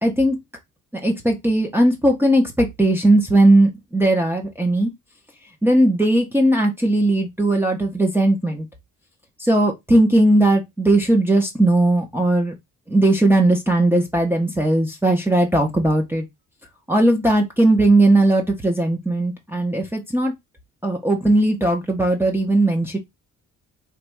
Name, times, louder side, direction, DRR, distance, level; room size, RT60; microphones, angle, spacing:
voice 1, 0.0-0.4 1.0-4.9 5.6-8.7 9.4-12.5 12.9-16.2 16.9-20.3 20.8-23.0, right 1 dB, 5° right, 0.9 m, -18 dB
3.3 x 3.3 x 4.7 m
cardioid pair, 140°, 32 cm